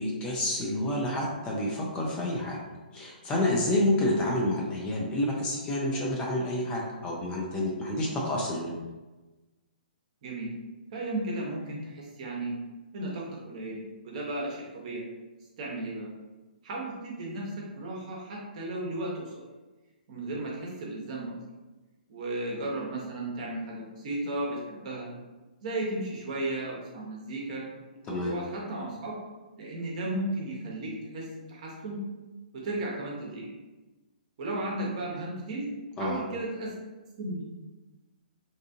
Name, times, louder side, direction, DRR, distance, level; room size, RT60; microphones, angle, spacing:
voice 1, 0.0-2.6 2.9-8.8 28.1-28.3 36.0-36.2, left 1 dB, 20° left, -2 dB, 0.4 m, -29 dB
voice 2, 10.9-12.5 12.9-15.1 15.6-16.1 16.6-19.5 20.1-21.3 22.1-25.1 25.6-27.6 28.1-29.2 29.6-32.0 32.5-33.5 34.4-35.7 36.0-36.7 37.2-37.4, right 2 dB, 45° right, -3 dB, 0.8 m, -34 dB
2.7 x 2.4 x 2.5 m, 1.2 s
hypercardioid pair, 135°, 5 cm